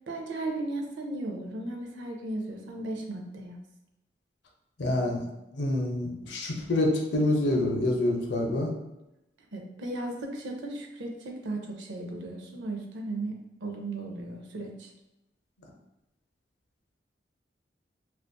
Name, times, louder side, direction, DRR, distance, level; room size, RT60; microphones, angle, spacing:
voice 1, 0.1-3.6 9.5-14.9, right 2 dB, 90° right, 2 dB, 0.5 m, -36 dB
voice 2, 4.8-5.2 5.5-8.7, left 1 dB, 75° left, 1 dB, 0.5 m, -26 dB
2.5 x 2.3 x 2.2 m, 0.93 s
head